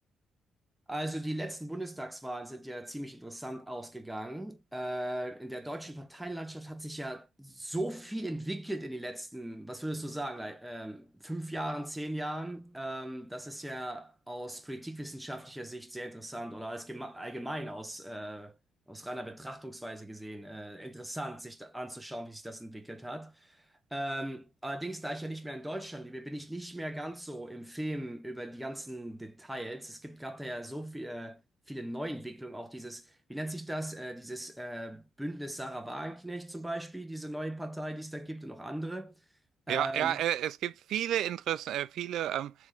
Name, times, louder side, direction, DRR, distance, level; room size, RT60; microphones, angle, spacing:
voice 1, 0.9-18.6 18.9-23.6 23.9-31.4 31.7-39.1 39.7-40.2, right 1 dB, 5° right, 0.8 m, -38 dB
voice 2, 39.7-42.5, right 11 dB, 80° right, 0.3 m, -31 dB
3.4 x 3.1 x 4.4 m
cardioid pair, 90°, 0 cm